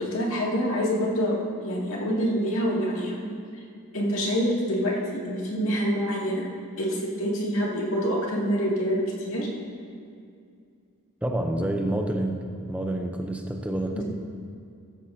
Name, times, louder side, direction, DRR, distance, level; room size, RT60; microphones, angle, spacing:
voice 1, 0.0-3.2 3.9-6.5 6.8-9.5 13.9-14.0, equal, 70° left, -3 dB, 2.3 m, -26 dB
voice 2, 11.2-14.0, right 1 dB, 5° right, 3 dB, 0.7 m, -28 dB
14.0 x 13.5 x 2.8 m, 2.3 s
head